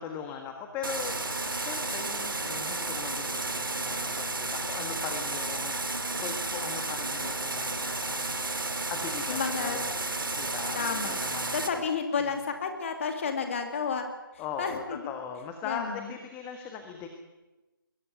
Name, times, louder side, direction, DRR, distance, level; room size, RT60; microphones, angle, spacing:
voice 1, 0.0-8.4 8.9-9.9 10.4-11.6 14.4-17.1, left 6 dB, 15° left, 5 dB, 1.5 m, -39 dB
sound 1, 0.8-11.7, right 2 dB, 70° right, 3.1 m, -32 dB
voice 2, 9.3-9.8 10.7-11.1 11.5-14.1 14.6-15.0 15.7-16.0, left 5 dB, 35° left, 5 dB, 2.5 m, -31 dB
22.0 x 17.0 x 9.4 m, 1.1 s
figure-of-eight pair, 150°, 12 cm